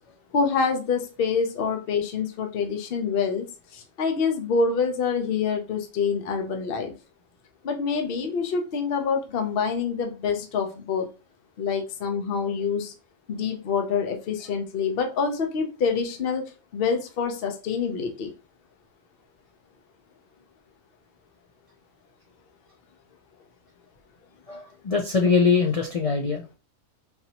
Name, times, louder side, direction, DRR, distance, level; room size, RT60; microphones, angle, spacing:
voice 1, 0.3-3.4 3.7-6.9 7.6-11.1 11.6-12.9 13.3-18.3, left 5 dB, 55° left, 4 dB, 0.8 m, -26 dB
voice 2, 24.5-26.6, left 4 dB, 70° left, 2 dB, 0.3 m, -23 dB
4.1 x 2.7 x 2.8 m, 0.31 s
omnidirectional pair, 1.3 m